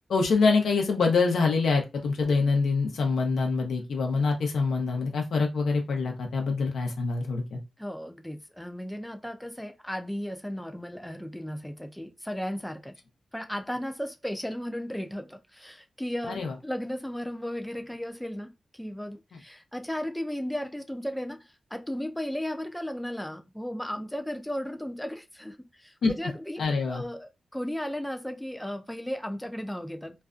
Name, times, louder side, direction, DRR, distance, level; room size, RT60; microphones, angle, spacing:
voice 1, 0.1-7.6 16.3-16.5 26.0-26.1 26.6-27.0, left 4 dB, 85° left, 0.7 m, -25 dB
voice 2, 7.8-12.9 13.3-30.2, equal, 5° left, 0.4 m, -35 dB
2.4 x 2.2 x 2.4 m
cardioid pair, 65°, 0 cm